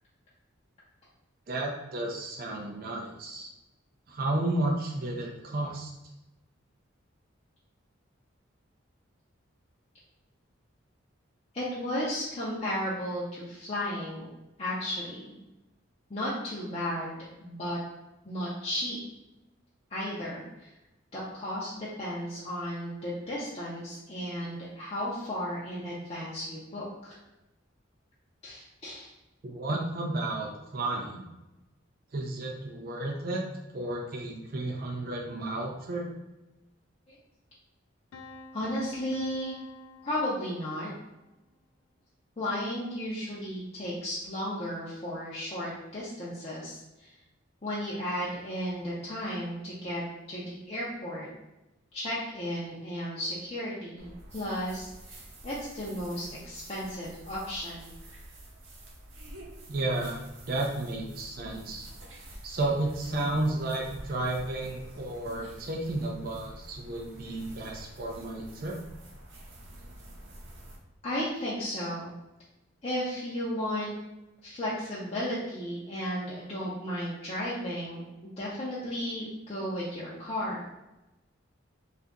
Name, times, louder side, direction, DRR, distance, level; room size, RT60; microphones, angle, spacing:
voice 1, 1.5-3.5 4.1-5.9 29.4-31.3 32.1-33.4 33.7-36.1 59.7-61.9 62.4-68.7, right 2 dB, 45° right, 0 dB, 0.4 m, -32 dB
voice 2, 11.5-14.2 14.6-15.3 16.1-17.8 18.3-19.0 19.9-20.7 21.1-27.2 28.4-29.1 37.1-37.2 38.5-39.6 40.0-40.9 42.4-47.1 47.6-51.3 51.9-57.9 60.6-60.8 71.0-72.1 72.8-73.9 74.4-80.7, equal, 30° left, -8 dB, 0.5 m, -34 dB
Piano, 38.1-41.0, left 3 dB, 80° left, 0.3 m, -48 dB
sound 1, 54.0-70.8, right 1 dB, 70° right, 0.7 m, -48 dB
2.7 x 2.5 x 3.4 m, 0.99 s
head